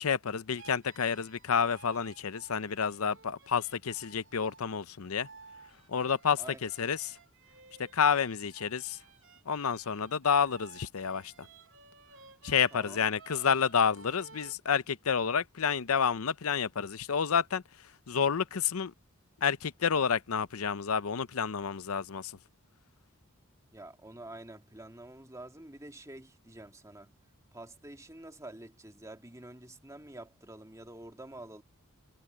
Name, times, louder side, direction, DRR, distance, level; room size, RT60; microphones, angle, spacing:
voice 1, 0.0-5.3 5.9-7.2 7.9-9.0 9.5-11.5 12.4-17.6 18.1-18.9 19.4-22.3, left 6 dB, 75° left, 0.7 m, -29 dB
sound 1, 0.5-4.6 5.2-14.5, right 5 dB, 60° right, 2.4 m, -55 dB
voice 2, 12.7-13.0 23.7-27.1 27.5-31.6, right 1 dB, 15° right, 2.3 m, -48 dB
head